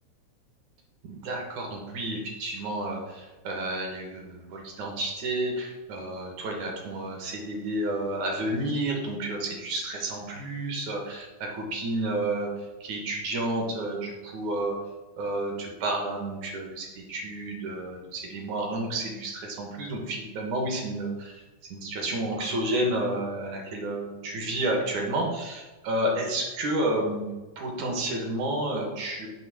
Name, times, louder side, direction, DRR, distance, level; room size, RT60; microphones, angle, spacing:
voice 1, 1.0-14.8 15.2-21.4 21.7-27.2 27.6-29.3, right 1 dB, 75° right, 0 dB, 2.8 m, -31 dB
7.9 x 3.1 x 6.3 m, 1.2 s
omnidirectional pair, 3.4 m